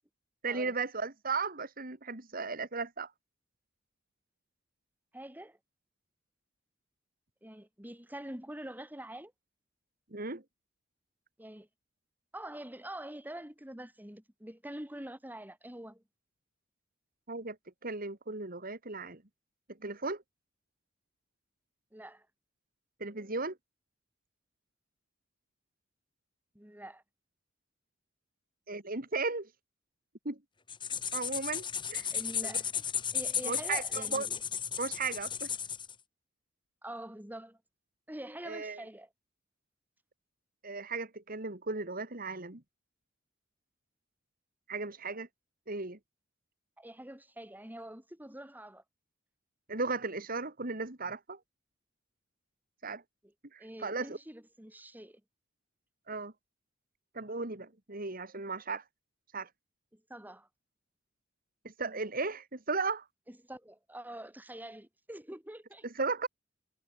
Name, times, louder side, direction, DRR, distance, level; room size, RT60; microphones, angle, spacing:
voice 1, 0.4-3.1 10.1-10.4 17.3-17.6 17.8-19.2 19.8-20.2 23.0-23.6 28.7-29.5 30.2-30.4 31.1-32.1 32.4-32.5 33.4-34.3 34.8-35.5 38.4-38.8 40.6-42.6 44.7-45.3 45.7-46.0 49.7-51.4 52.8-53.0 53.5-54.2 56.1-56.3 57.1-58.8 59.3-59.5 61.6-63.1 65.9-66.3, right 4 dB, 45° right, 2.8 m, -36 dB
voice 2, 5.1-5.6 7.4-9.3 11.4-11.7 12.3-16.0 21.9-22.3 26.5-27.0 32.1-32.8 33.1-34.4 36.8-37.6 38.1-39.1 46.8-48.8 53.6-55.2 59.9-60.5 63.3-65.8, right 1 dB, 10° right, 4.0 m, -45 dB
sound 1, 30.7-35.9, left 8 dB, 25° left, 1.5 m, -34 dB
head